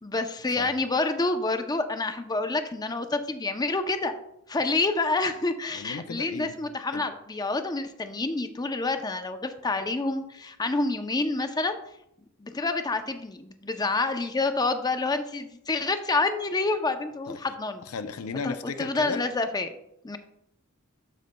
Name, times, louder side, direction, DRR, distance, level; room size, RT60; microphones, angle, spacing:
voice 1, 0.0-4.1 4.5-11.8 12.4-17.9 18.4-19.7 20.0-20.2, left 3 dB, 20° left, 8 dB, 0.5 m, -28 dB
voice 2, 5.7-6.5 6.9-7.0 17.3-17.4 17.9-19.2, left 5 dB, 85° left, 10 dB, 0.5 m, -35 dB
12.5 x 5.3 x 2.2 m, 0.79 s
head